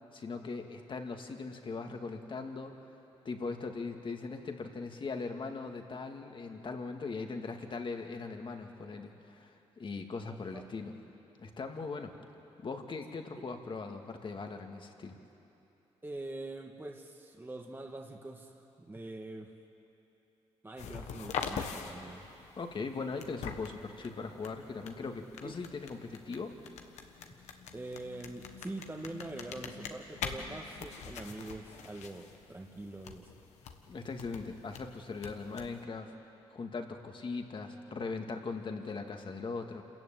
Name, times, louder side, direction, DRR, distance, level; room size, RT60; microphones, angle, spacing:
voice 1, 0.1-2.7 3.2-10.9 11.4-12.1 12.6-15.2 22.6-26.6 33.9-36.1 36.5-39.8, left 4 dB, 45° left, 4 dB, 2.2 m, -40 dB
voice 2, 10.2-10.6 16.0-19.5 20.6-22.3 25.4-25.6 27.7-33.3, right 2 dB, 20° right, 2 dB, 1.7 m, -44 dB
sound 1, 20.8-35.8, left 6 dB, 85° left, 1.5 m, -44 dB
27.0 x 14.5 x 9.2 m, 3.0 s
cardioid pair, 65°, 11 cm